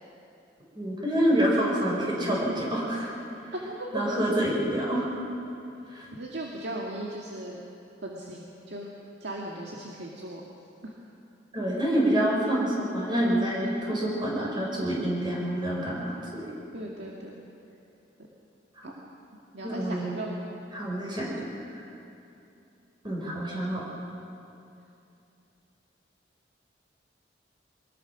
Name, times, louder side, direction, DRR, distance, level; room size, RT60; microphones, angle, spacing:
voice 1, 0.8-3.1 3.9-5.1 5.9-6.1 11.5-16.5 19.6-20.2 20.7-21.5 23.0-23.8, right 1 dB, 25° right, -4 dB, 5.6 m, -27 dB
voice 2, 3.5-4.1 5.8-5.9 6.2-7.6 8.0-8.9 9.2-10.4 10.8-10.9 13.6-14.2 16.7-17.4 18.8-18.9 19.5-20.4, right 1 dB, 65° right, -3 dB, 2.0 m, -37 dB
24.5 x 19.5 x 6.1 m, 2.7 s
head